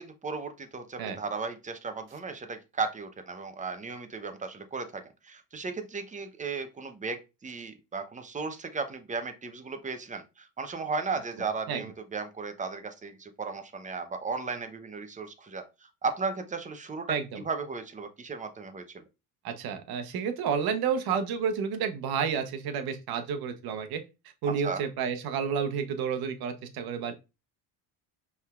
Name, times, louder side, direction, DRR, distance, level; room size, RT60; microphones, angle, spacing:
voice 1, 0.0-17.2 17.4-18.8 24.4-24.8, right 4 dB, 20° right, 8 dB, 0.7 m, -35 dB
voice 2, 17.1-17.4 19.4-24.0 24.4-27.1, right 6 dB, 60° right, 8 dB, 1.0 m, -30 dB
5.3 x 3.5 x 2.4 m, 0.27 s
supercardioid pair, 100°, 41 cm